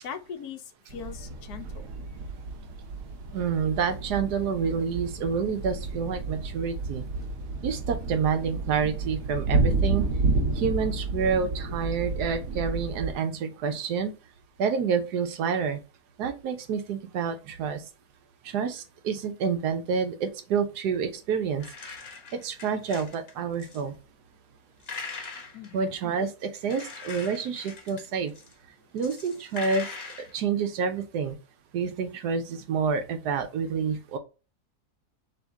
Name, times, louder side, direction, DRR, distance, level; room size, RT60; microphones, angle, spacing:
voice 1, 0.0-1.9 25.5-25.8, left 7 dB, 75° left, 1.2 m, -40 dB
sound 1, 0.9-13.1, right 3 dB, 60° right, 1.2 m, -30 dB
voice 2, 3.3-7.0 7.6-10.0 10.6-14.1 14.6-15.8 16.2-17.8 18.4-21.6 22.3-23.9 25.7-28.3 28.9-29.9 30.3-31.4 31.7-34.2, right 6 dB, 80° right, 1.3 m, -28 dB
sound 2, 21.6-23.3 23.6-23.8 24.8-26.1 26.6-28.5 29.0-30.3, left 4 dB, 40° left, 1.2 m, -41 dB
3.5 x 3.4 x 4.0 m
omnidirectional pair, 1.7 m